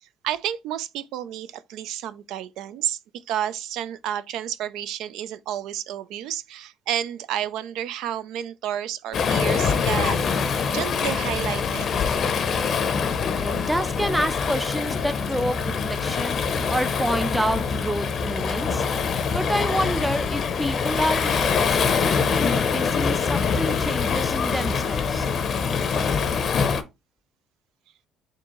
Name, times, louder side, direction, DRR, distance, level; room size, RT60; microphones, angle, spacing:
voice 1, 0.0-3.0 3.3-10.3 10.7-11.9 19.5-20.0, right 11 dB, 75° right, 0.3 m, -31 dB
Waves surf, 9.1-26.8, left 6 dB, 50° left, 0.6 m, -24 dB
voice 2, 13.3-18.8 19.3-25.3, equal, 5° right, 0.4 m, -28 dB
4.3 x 2.5 x 3.0 m
cardioid pair, 95°, 0 cm